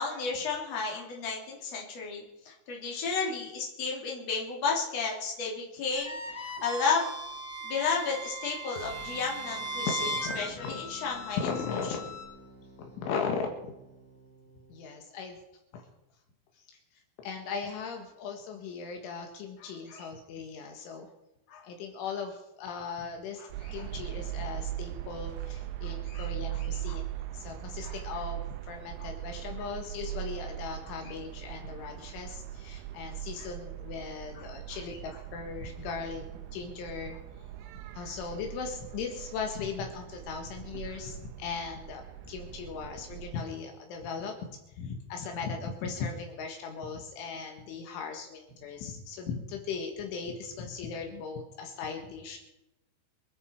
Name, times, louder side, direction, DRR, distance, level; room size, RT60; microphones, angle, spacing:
voice 1, 0.0-7.1 7.6-10.1 10.4-11.4 11.7-11.8 19.6-20.1 21.5-21.6 23.4-23.9 25.8-27.0 27.8-27.9 29.0-29.1 29.6-29.7 33.4-33.5 34.3-34.5 34.9-35.0, left 5 dB, 35° left, -2 dB, 3.9 m, -33 dB
sound 1, 5.9-12.2, right 1 dB, 5° left, 5.7 m, -38 dB
sound 2, 8.8-14.9, right 1 dB, 55° right, 4.4 m, -52 dB
voice 2, 9.9-10.8 11.4-12.0 13.0-13.7 14.7-15.4 15.7-15.8 17.2-21.1 21.6-27.1 27.3-36.2 36.5-37.2 38.0-44.3 44.7-52.4, left 5 dB, 75° left, 3 dB, 4.0 m, -38 dB
sound 3, 23.5-43.4, right 13 dB, 75° right, 3.1 m, -40 dB
26.5 x 9.5 x 4.7 m, 0.90 s
omnidirectional pair, 5.7 m